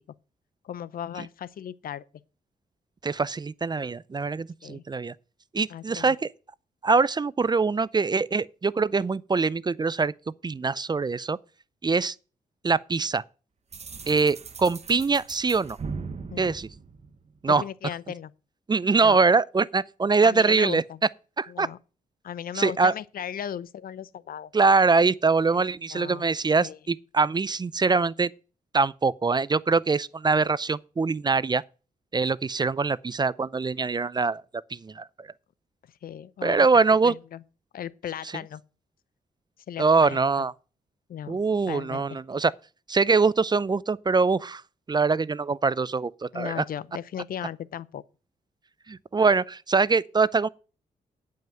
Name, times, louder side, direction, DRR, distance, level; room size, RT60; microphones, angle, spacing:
voice 1, 0.6-2.0 4.6-4.8 5.7-6.2 16.3-16.6 17.5-18.3 19.0-19.2 20.2-21.0 21.5-21.8 22.2-24.5 25.6-26.2 26.6-26.8 36.0-36.7 37.0-37.4 37.7-38.6 39.7-40.5 41.1-41.4 41.7-42.2 46.3-48.0, left 9 dB, 70° left, 0.5 m, -36 dB
voice 2, 3.0-5.1 5.5-6.3 6.8-10.1 10.4-11.4 11.8-12.1 12.6-13.2 14.1-15.8 16.4-16.7 17.4-17.6 18.7-20.8 21.4-21.7 22.5-22.9 24.5-28.3 28.7-31.6 32.1-34.4 34.7-35.3 36.4-37.1 39.8-40.5 41.3-42.5 42.9-44.6 44.9-46.6 48.9-50.5, right 4 dB, 25° right, 0.4 m, -23 dB
sound 1, 13.7-17.6, right 4 dB, 45° right, 1.0 m, -39 dB
9.1 x 5.6 x 7.5 m
cardioid pair, 60°, 16 cm